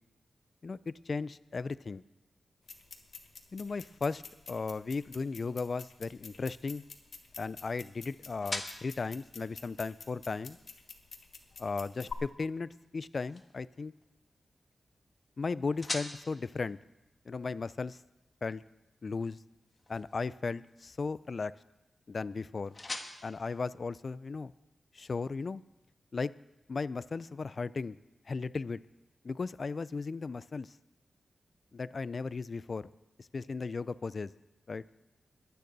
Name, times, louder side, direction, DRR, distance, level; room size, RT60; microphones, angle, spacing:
voice 1, 0.6-2.0 3.5-4.2 4.5-6.8 7.4-10.6 11.6-13.9 15.4-16.8 17.3-18.0 18.4-18.6 19.0-19.4 19.9-21.5 22.1-22.8 23.2-24.5 24.9-25.6 26.1-26.3 26.7-28.0 28.3-28.8 29.2-30.7 31.7-32.9 33.2-34.3 34.7-34.8, left 4 dB, 50° left, 17 dB, 0.4 m, -36 dB
sound 1, 2.6-12.1, left 5 dB, 75° left, 1.2 m, -49 dB
sound 2, 5.8-24.6, left 2 dB, 30° left, 1.3 m, -48 dB
22.0 x 9.3 x 4.0 m, 0.96 s
wide cardioid pair, 100°, 0 cm